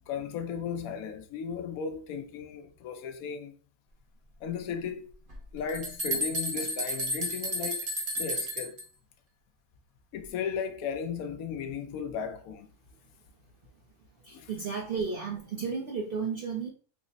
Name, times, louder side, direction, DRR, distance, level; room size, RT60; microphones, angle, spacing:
voice 1, 0.1-3.5 4.4-5.1 5.5-7.9 8.2-8.8 10.1-12.7 14.3-14.5, left 7 dB, 75° left, 1.0 m, -35 dB
sound 1, 5.3-5.4 5.7-8.8, right 1 dB, 40° right, 0.9 m, -32 dB
voice 2, 14.2-16.7, right 5 dB, 60° right, 0.6 m, -33 dB
3.7 x 2.0 x 3.9 m
omnidirectional pair, 1.5 m